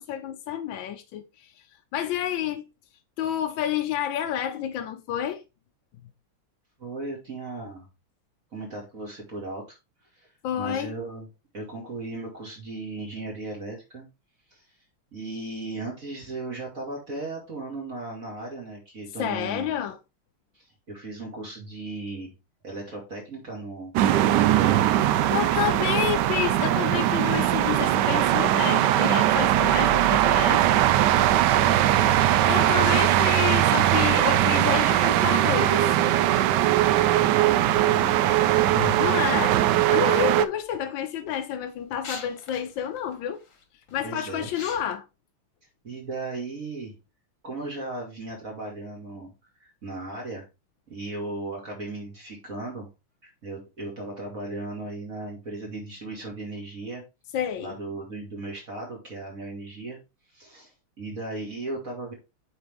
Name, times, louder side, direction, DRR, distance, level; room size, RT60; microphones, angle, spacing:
voice 1, 0.0-1.5 1.9-2.6 3.2-5.4 10.4-10.9 19.2-20.0 25.3-30.8 32.5-35.9 39.0-39.6 39.9-43.4 43.9-45.0 57.3-57.8, left 10 dB, 70° left, 1.2 m, -29 dB
voice 2, 6.8-7.9 8.5-9.8 10.1-10.3 10.6-11.3 11.5-14.1 14.5-14.7 15.1-19.8 20.5-22.3 22.6-24.8 25.4-25.7 25.9-26.2 31.2-33.4 36.8-39.2 44.0-44.5 45.8-47.0 47.4-49.3 49.6-50.5 50.9-52.9 53.2-57.0 57.6-60.0 60.3-62.1, right 2 dB, 40° right, 2.5 m, -37 dB
sound 1, 23.9-40.5, right 13 dB, 80° right, 0.9 m, -20 dB
sound 2, 38.5-39.6 40.4-40.8 41.3-44.9, left 5 dB, 40° left, 1.4 m, -38 dB
8.5 x 4.3 x 3.4 m
omnidirectional pair, 2.4 m